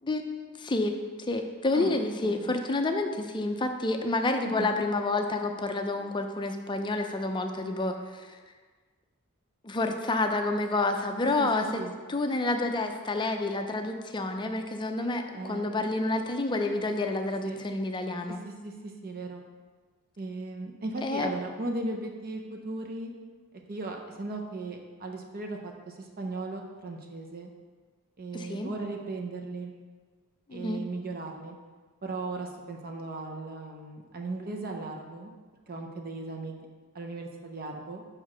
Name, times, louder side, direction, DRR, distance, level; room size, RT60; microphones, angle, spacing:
voice 1, 0.0-8.3 9.6-11.8 12.1-18.4 21.0-21.3 28.3-28.7 30.5-30.8, left 2 dB, 20° left, 5 dB, 0.5 m, -29 dB
voice 2, 2.2-2.5 4.4-4.8 11.4-11.9 15.3-15.7 17.4-17.6 18.3-19.4 20.2-23.1 23.7-27.5 28.2-29.7 30.5-31.6 32.0-35.3 35.7-36.7 36.9-38.0, right 2 dB, 40° right, 2 dB, 0.6 m, -37 dB
4.9 x 4.6 x 6.0 m, 1.4 s
head